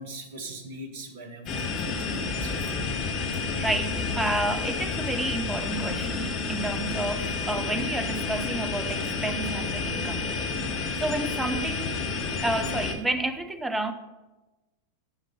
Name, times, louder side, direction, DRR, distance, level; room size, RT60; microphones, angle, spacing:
voice 1, 0.0-2.7 3.0-3.1, right 2 dB, 50° right, 5 dB, 1.4 m, -41 dB
sound 1, 1.5-12.9, left 4 dB, 35° left, 1.1 m, -30 dB
voice 2, 3.6-10.2 10.6-12.0 12.4-13.9, right 2 dB, 10° right, 9 dB, 0.6 m, -30 dB
9.6 x 5.2 x 5.7 m, 1.1 s
figure-of-eight pair, 90°, 0 cm